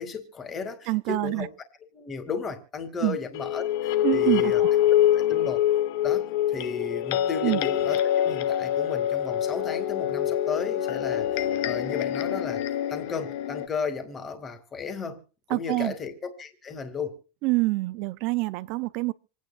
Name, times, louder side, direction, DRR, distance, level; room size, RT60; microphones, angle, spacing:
voice 1, 0.0-1.5 1.9-4.6 5.1-5.6 6.0-12.6 12.9-15.2 15.5-17.2, left 5 dB, 20° left, 2.3 m, -34 dB
voice 2, 0.9-1.5 3.0-3.2 4.0-4.7 7.4-7.6 15.5-15.9 17.4-19.1, right 22 dB, 50° right, 0.6 m, -26 dB
sound 1, 3.3-13.7, left 11 dB, 60° left, 1.1 m, -25 dB
27.0 x 9.5 x 2.4 m
supercardioid pair, 165°, 0 cm